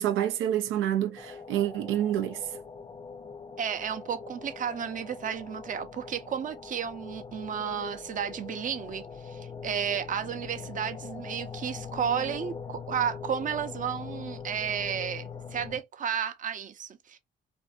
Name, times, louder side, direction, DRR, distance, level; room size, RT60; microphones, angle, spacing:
voice 1, 0.0-2.5, right 11 dB, 90° right, 0.4 m, -28 dB
sound 1, 1.2-15.8, left 5 dB, 25° left, 0.5 m, -42 dB
voice 2, 3.6-17.2, right 8 dB, 40° right, 0.5 m, -33 dB
2.6 x 2.4 x 2.3 m
cardioid pair, 90°, 20 cm